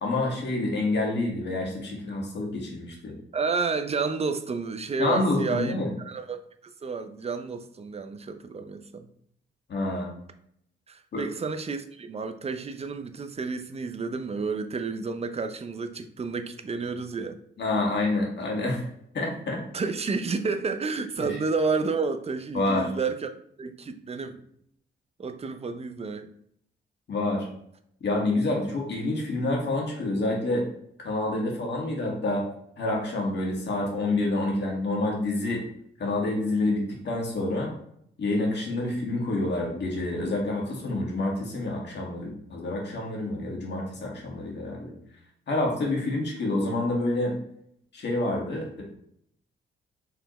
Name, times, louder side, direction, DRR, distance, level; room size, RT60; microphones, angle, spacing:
voice 1, 0.0-3.1 5.0-5.9 9.7-10.1 11.1-11.2 17.6-18.9 19.1-19.6 21.2-21.3 22.5-22.9 27.1-27.5 28.0-30.7 31.0-32.5 32.8-35.6 36.0-37.7 38.2-44.9 45.5-47.3 47.9-48.8, left 2 dB, 55° left, -1 dB, 1.7 m, -28 dB
voice 2, 3.3-5.7 6.0-6.4 6.8-9.1 10.9-17.4 19.7-23.3 23.6-24.4 25.2-26.3 38.7-38.9, right 4 dB, 30° right, 8 dB, 0.5 m, -30 dB
4.9 x 3.5 x 3.1 m, 0.69 s
cardioid pair, 75°, 21 cm